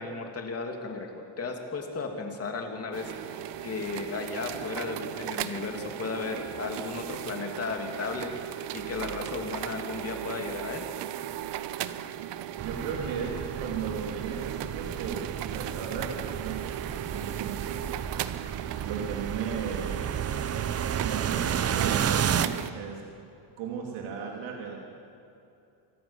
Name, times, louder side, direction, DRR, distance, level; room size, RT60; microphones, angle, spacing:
voice 1, 0.0-10.9, left 4 dB, 30° left, 3 dB, 2.8 m, -35 dB
sound 1, 2.9-22.7, right 12 dB, 55° right, 1.0 m, -37 dB
sound 2, 12.6-22.5, right 8 dB, 30° right, 0.8 m, -32 dB
voice 2, 12.6-18.0 18.8-20.1 21.0-23.0 23.6-24.8, right 6 dB, 80° right, 0 dB, 3.2 m, -36 dB
26.0 x 14.0 x 7.3 m, 2.8 s
cardioid pair, 135°, 49 cm